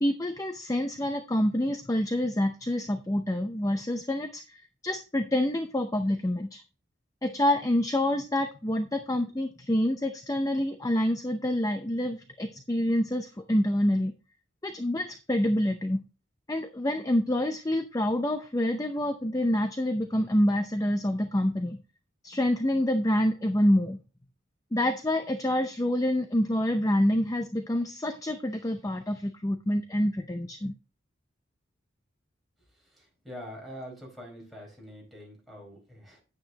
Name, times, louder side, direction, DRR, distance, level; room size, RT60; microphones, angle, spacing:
voice 1, 0.0-6.6 7.2-14.1 14.6-16.0 16.5-21.8 22.2-24.0 24.7-30.7, left 1 dB, 20° left, 7 dB, 0.6 m, -27 dB
voice 2, 32.8-36.2, equal, ahead, -2 dB, 4.9 m, -45 dB
9.9 x 9.0 x 2.9 m, 0.33 s
head